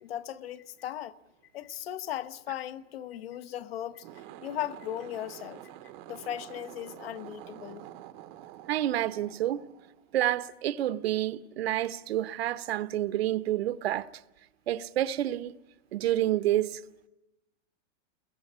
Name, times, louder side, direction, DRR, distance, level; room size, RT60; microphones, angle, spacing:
voice 1, 0.0-1.2 1.5-4.0 4.4-5.6 6.1-7.9, left 11 dB, 50° left, 0.9 m, -37 dB
sound 1, 3.9-10.4, right 12 dB, 25° right, 0.8 m, -48 dB
voice 2, 8.7-9.6 10.1-14.1 14.7-15.5 15.9-16.8, right 13 dB, 55° right, 1.0 m, -28 dB
29.5 x 22.0 x 5.6 m
supercardioid pair, 175°, 37 cm